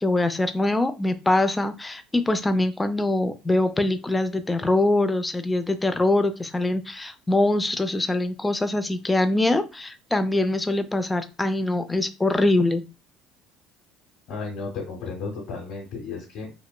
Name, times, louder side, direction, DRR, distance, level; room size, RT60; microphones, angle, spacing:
voice 1, 0.0-12.8, left 2 dB, 15° left, 9 dB, 0.4 m, -23 dB
voice 2, 14.3-16.6, left 4 dB, 65° left, -3 dB, 1.0 m, -34 dB
2.9 x 2.1 x 2.2 m, 0.29 s
supercardioid pair, 75°, 0 cm